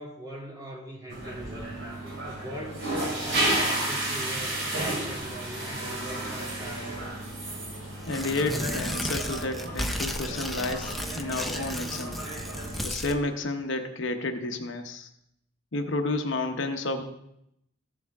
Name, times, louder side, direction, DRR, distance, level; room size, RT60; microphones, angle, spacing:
voice 1, 0.0-7.2 16.9-17.0, equal, 20° right, -3 dB, 1.9 m, -41 dB
sound 1, 1.1-12.8, right 1 dB, 65° right, 3.0 m, -32 dB
Tearing, 8.0-13.2, left 1 dB, ahead, 0.5 m, -34 dB
voice 2, 8.1-12.2 12.8-15.1 15.7-17.0, left 2 dB, 60° left, 5 dB, 0.8 m, -31 dB
14.5 x 7.0 x 3.5 m, 0.79 s
head